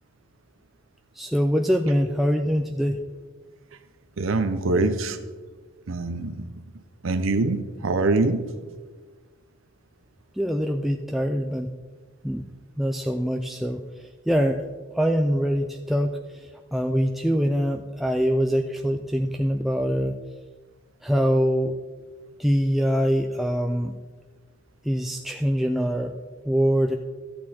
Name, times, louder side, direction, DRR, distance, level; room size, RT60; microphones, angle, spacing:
voice 1, 1.2-3.0 10.4-11.7 12.2-12.4 12.8-13.8 14.3-14.6 14.9-16.2 16.7-20.1 21.0-21.7 22.4-23.9 24.9-26.1 26.5-27.0, equal, ahead, 3 dB, 0.4 m, -23 dB
voice 2, 4.2-5.2 5.9-6.5 7.0-8.4, right 3 dB, 90° right, 9 dB, 0.7 m, -24 dB
13.0 x 8.5 x 4.3 m, 1.5 s
head